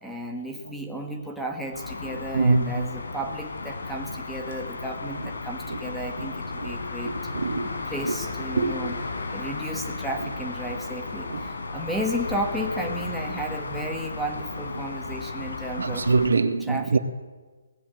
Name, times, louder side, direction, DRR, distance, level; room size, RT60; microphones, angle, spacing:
voice 1, 0.0-7.3 7.9-9.0 9.3-16.1 16.6-17.0, right 1 dB, ahead, 1.5 m, -33 dB
sound 1, 1.7-16.3, left 3 dB, 75° left, 5.1 m, -34 dB
voice 2, 2.1-2.9 5.7-5.8 6.2-6.3 6.6-6.7 7.0-7.7 8.0-8.1 8.6-8.8 11.3-11.4 15.8-17.0, right 3 dB, 85° right, 1.9 m, -24 dB
21.5 x 19.0 x 8.1 m
hypercardioid pair, 175°, 0 cm